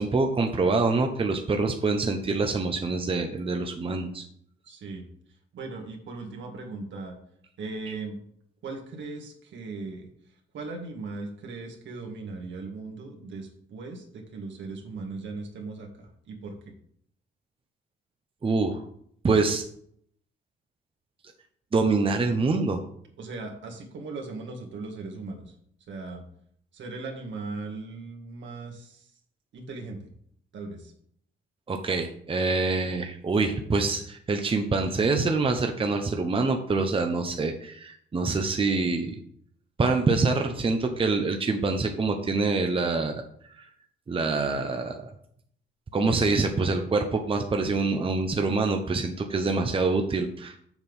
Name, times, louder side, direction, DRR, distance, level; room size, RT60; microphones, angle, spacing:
voice 1, 0.0-4.2 18.4-18.8 19.2-19.6 21.7-22.8 31.7-39.2 39.8-43.2 44.1-45.0 45.9-50.6, right 3 dB, 25° right, 5 dB, 0.9 m, -25 dB
voice 2, 4.7-5.0 5.5-7.2 7.6-8.2 8.6-10.1 10.5-16.5 23.2-25.5 25.9-26.2 26.7-29.1 29.5-30.1 30.5-30.9, right 3 dB, 70° right, 3 dB, 2.1 m, -38 dB
7.2 x 6.0 x 5.4 m, 0.66 s
cardioid pair, 90°, 20 cm